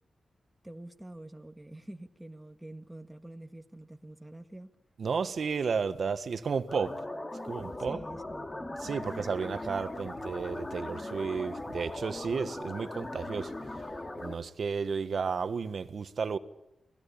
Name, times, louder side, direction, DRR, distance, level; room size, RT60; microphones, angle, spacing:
voice 1, 0.6-4.7 7.8-9.2, right 1 dB, 10° right, 1.7 m, -46 dB
voice 2, 5.0-6.9 7.4-8.0 8.8-13.5 14.2-16.4, right 5 dB, 60° right, 1.6 m, -32 dB
sound 1, 6.7-14.3, left 2 dB, 25° left, 2.9 m, -39 dB
29.5 x 20.0 x 8.7 m
wide cardioid pair, 95°, 0 cm